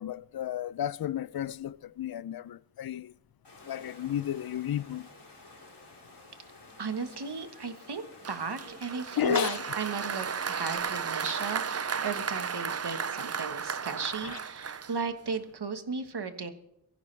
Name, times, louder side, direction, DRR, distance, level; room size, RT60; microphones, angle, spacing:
voice 1, 0.0-3.1 3.7-5.1 9.2-9.6 14.2-14.4, left 11 dB, 65° left, 0.5 m, -32 dB
Water, 3.4-10.8, left 2 dB, 80° left, 3.9 m, -52 dB
voice 2, 6.8-16.5, right 5 dB, 75° right, 1.5 m, -35 dB
Applause, 8.2-15.4, right 6 dB, 40° right, 0.5 m, -34 dB
22.5 x 14.5 x 3.3 m
wide cardioid pair, 80°, 40 cm